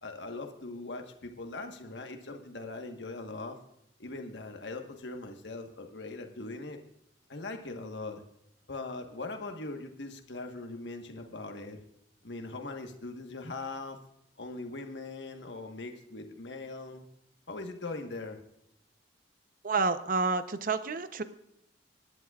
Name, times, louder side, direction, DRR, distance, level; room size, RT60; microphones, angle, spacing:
voice 1, 0.0-3.6 4.0-6.8 7.3-8.2 8.7-11.8 12.2-14.0 14.4-17.0 17.5-18.4, left 3 dB, 85° left, 4 dB, 1.4 m, -40 dB
voice 2, 19.6-21.2, right 4 dB, 50° right, 10 dB, 0.8 m, -29 dB
24.5 x 11.0 x 2.4 m, 0.80 s
head